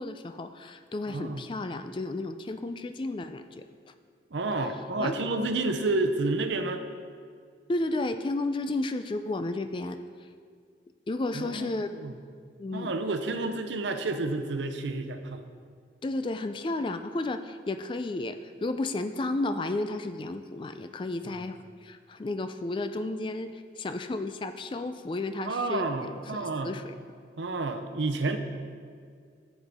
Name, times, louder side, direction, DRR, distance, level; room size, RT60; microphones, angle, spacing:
voice 1, 0.0-3.7 5.0-5.3 7.7-10.0 11.1-11.9 12.6-12.9 16.0-26.9, left 2 dB, 25° left, 10 dB, 0.3 m, -32 dB
voice 2, 1.1-1.5 4.3-6.8 11.3-12.1 12.7-15.4 21.3-21.4 25.5-26.7 27.4-28.4, right 2 dB, 80° right, 7 dB, 0.6 m, -30 dB
10.0 x 7.2 x 3.5 m, 2.1 s
head